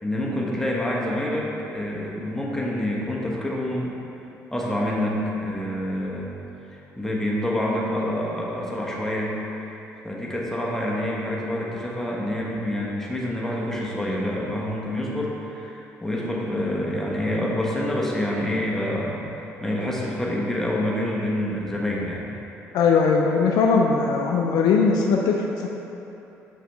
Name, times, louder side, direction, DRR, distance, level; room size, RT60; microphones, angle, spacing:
voice 1, 0.0-3.9 4.5-6.3 6.7-9.4 10.0-22.3, left 1 dB, 5° left, -4 dB, 1.2 m, -27 dB
voice 2, 22.7-25.7, left 5 dB, 60° left, 1 dB, 0.4 m, -20 dB
5.7 x 5.3 x 3.6 m, 3.0 s
figure-of-eight pair, 45°, 8 cm